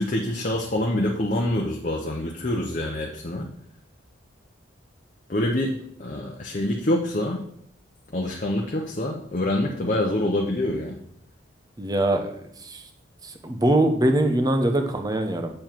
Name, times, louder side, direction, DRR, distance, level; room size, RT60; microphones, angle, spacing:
voice 1, 0.0-3.5 5.3-5.7 6.0-7.4 8.1-11.0, left 1 dB, 40° left, 1 dB, 0.8 m, -26 dB
voice 2, 11.8-12.3 12.6-12.8 13.2-15.5, right 1 dB, 20° right, 6 dB, 0.8 m, -22 dB
7.5 x 7.0 x 4.6 m, 0.69 s
head